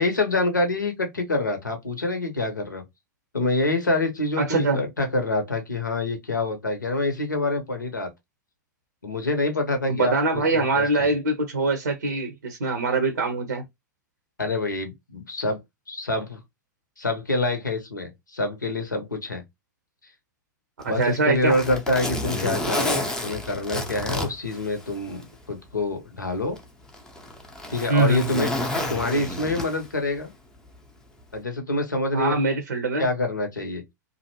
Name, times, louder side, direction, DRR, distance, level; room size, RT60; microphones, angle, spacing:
voice 1, 0.0-2.8 3.3-8.1 9.0-11.1 14.4-15.6 15.9-16.4 17.0-19.4 20.8-26.6 27.7-28.5 28.9-30.3 31.3-32.3 33.0-33.8, left 2 dB, 80° left, 0.8 m, -26 dB
voice 2, 4.4-4.8 9.9-13.6 21.0-21.5 27.9-28.3 32.1-33.1, right 3 dB, 75° right, 0.6 m, -23 dB
Zipper (clothing), 20.8-25.3 25.7-25.8 26.6-30.0 31.2-31.4, left 1 dB, 5° left, 0.5 m, -30 dB
2.5 x 2.1 x 2.8 m
figure-of-eight pair, 95°, 10 cm